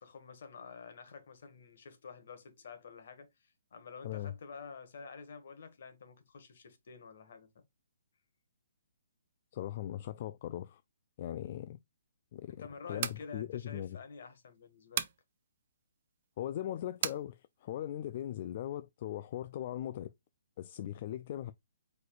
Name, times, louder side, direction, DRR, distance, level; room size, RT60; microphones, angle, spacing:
voice 1, 0.0-7.5 12.5-15.0, left 5 dB, 55° left, 1.5 m, -49 dB
voice 2, 9.5-10.8 11.2-11.8 12.3-12.6 12.9-14.0 16.4-20.1 20.6-21.5, left 12 dB, 35° left, 0.3 m, -39 dB
sound 1, 12.8-13.3 15.0-15.2 17.0-17.2, right 10 dB, 35° right, 0.5 m, -34 dB
4.8 x 4.0 x 2.4 m
hypercardioid pair, 165°, 0 cm